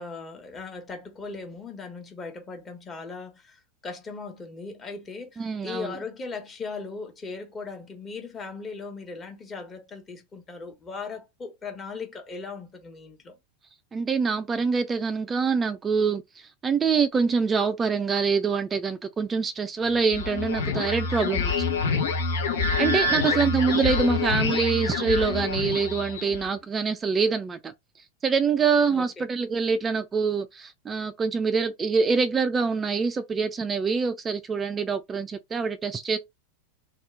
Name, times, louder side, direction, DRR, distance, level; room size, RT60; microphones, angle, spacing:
voice 1, 0.0-3.6 3.8-13.3 23.0-23.5 28.9-29.0, left 4 dB, 25° left, 1.1 m, -38 dB
voice 2, 5.4-6.0 13.9-21.7 22.8-27.7 28.2-36.2, right 5 dB, 20° right, 0.3 m, -25 dB
sound 1, 19.8-26.5, left 4 dB, 75° left, 0.8 m, -27 dB
2.8 x 2.3 x 3.4 m
hypercardioid pair, 95°, 0 cm